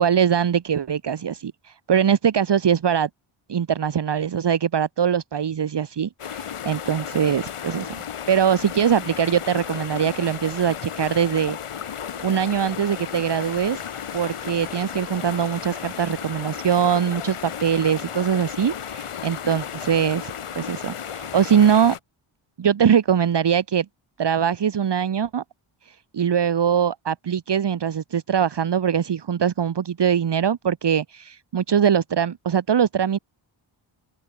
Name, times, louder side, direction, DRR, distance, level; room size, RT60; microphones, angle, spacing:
voice 1, 0.0-3.1 3.5-7.9 8.3-11.6 12.2-13.8 14.1-21.9 22.6-23.8 24.2-25.4 26.1-33.2, right 8 dB, 55° right, 1.6 m, -22 dB
sound 1, 6.2-22.0, left 8 dB, 85° left, 5.9 m, -34 dB
sound 2, 12.0-20.6, left 2 dB, 15° left, 6.3 m, -48 dB
wide cardioid pair, 110°, 50 cm